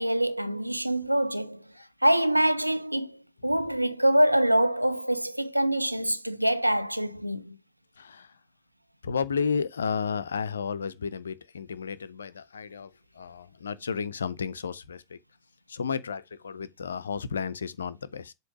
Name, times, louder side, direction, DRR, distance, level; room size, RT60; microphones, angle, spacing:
voice 1, 0.0-1.6 2.0-3.2 3.4-7.6, right 1 dB, 90° right, 0.5 m, -25 dB
voice 2, 8.0-8.4 9.0-15.2 15.7-18.3, left 6 dB, 70° left, 0.5 m, -32 dB
7.7 x 2.9 x 6.0 m
figure-of-eight pair, 90°, 0 cm